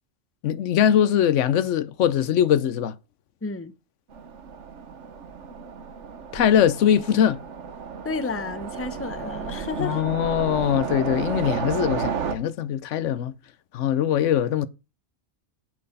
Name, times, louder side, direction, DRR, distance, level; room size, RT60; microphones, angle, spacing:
voice 1, 0.4-2.9 6.3-7.4 9.8-13.3 13.7-14.7, left 9 dB, 85° left, 1.0 m, -22 dB
voice 2, 3.4-3.7 8.0-10.0, left 4 dB, 15° left, 0.6 m, -31 dB
Train, 4.1-12.3, right 6 dB, 75° right, 1.4 m, -32 dB
7.7 x 7.6 x 5.4 m
omnidirectional pair, 1.2 m